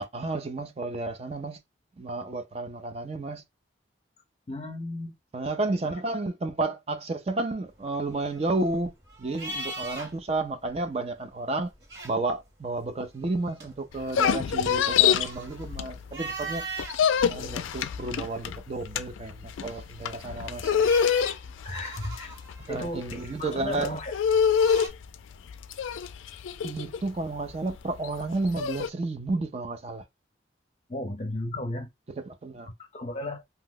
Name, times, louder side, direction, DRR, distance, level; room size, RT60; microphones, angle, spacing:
voice 1, 0.0-1.6 2.0-3.4 5.3-8.9 9.2-11.7 12.0-16.6 17.3-20.7 22.7-24.0 26.6-30.0 32.2-32.7, right 2 dB, 30° right, 0.4 m, -31 dB
voice 2, 4.5-5.1 21.6-22.3 22.7-24.1 30.9-31.9 32.9-33.4, left 1 dB, 35° left, 0.6 m, -34 dB
sound 1, 7.8-10.4 10.7-10.8 11.6-12.5 13.1-17.0 17.6-18.5 20.0-24.9, right 2 dB, 60° right, 1.6 m, -41 dB
sound 2, 13.9-16.3 16.6-28.9, left 7 dB, 85° left, 0.3 m, -26 dB
2.8 x 2.0 x 3.7 m
head